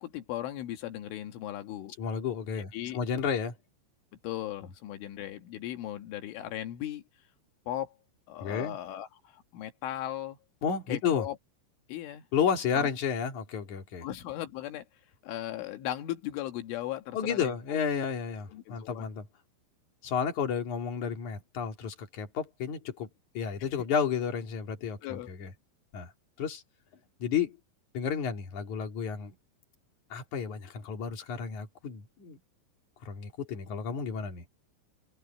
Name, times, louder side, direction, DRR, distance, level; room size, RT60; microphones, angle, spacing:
voice 1, 0.0-1.9 2.6-3.0 4.2-7.0 7.7-7.9 8.3-10.4 10.9-11.4 11.9-12.3 12.7-12.9 14.0-14.9 15.2-17.5 18.5-19.1 23.6-23.7 25.0-25.3, left 13 dB, 80° left, 4.1 m, -37 dB
voice 2, 2.0-3.6 8.4-8.8 10.6-11.3 12.3-14.1 17.1-19.3 20.0-23.1 23.3-25.5 25.9-26.1 26.4-26.6 27.2-27.6 27.9-29.3 30.1-32.4 33.0-34.4, left 7 dB, 45° left, 3.7 m, -32 dB
omnidirectional pair, 5.6 m